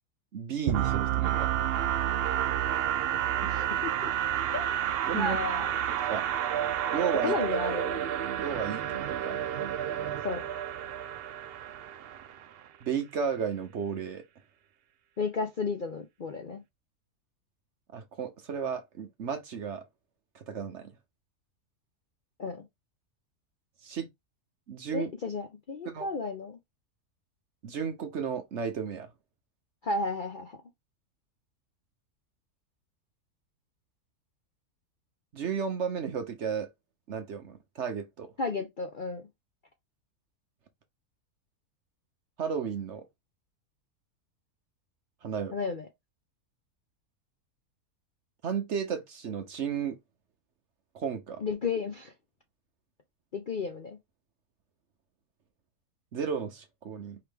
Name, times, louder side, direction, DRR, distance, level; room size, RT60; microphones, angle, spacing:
voice 1, 0.3-1.5 5.1-5.4 6.1-6.2 6.9-7.3 8.4-9.4 12.8-14.2 17.9-19.8 20.3-20.9 23.8-24.1 24.7-25.1 25.9-26.1 27.6-29.1 35.3-36.7 37.1-38.3 42.4-43.1 45.2-45.6 48.4-50.0 50.9-51.4 56.1-57.2, right 7 dB, 55° right, 0.9 m, -33 dB
sound 1, 0.7-12.4, right 10 dB, 85° right, 0.5 m, -30 dB
voice 2, 3.4-4.1 4.5-4.7 5.1-5.7 7.2-8.0 10.2-10.4 15.2-16.6 22.4-22.6 24.9-26.6 29.8-30.6 38.4-39.3 45.5-45.9 51.4-52.1 53.3-54.0, left 4 dB, 50° left, 0.6 m, -33 dB
4.8 x 3.2 x 3.4 m
omnidirectional pair, 1.6 m